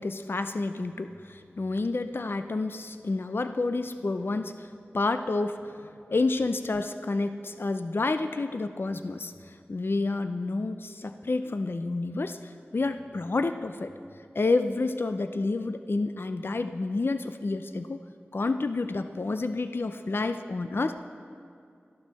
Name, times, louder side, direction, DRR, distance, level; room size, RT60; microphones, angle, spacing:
voice 1, 0.0-4.7 4.9-13.9 14.3-18.0 18.3-21.0, left 3 dB, 60° left, 9 dB, 0.4 m, -29 dB
13.5 x 11.5 x 4.1 m, 2.4 s
wide cardioid pair, 60°, 4 cm